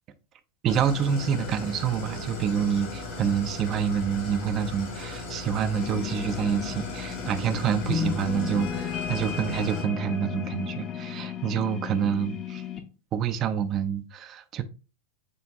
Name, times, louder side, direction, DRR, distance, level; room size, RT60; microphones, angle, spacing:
voice 1, 0.6-12.6 13.1-14.6, right 8 dB, 30° right, 0.4 m, -27 dB
Idling, 0.7-9.8, left 2 dB, 50° left, 1.5 m, -38 dB
Organ, 1.1-11.5, left 10 dB, 65° left, 0.7 m, -47 dB
sound 1, 5.8-12.8, left 8 dB, 30° left, 0.7 m, -34 dB
7.5 x 2.5 x 2.4 m
figure-of-eight pair, 90°, 0 cm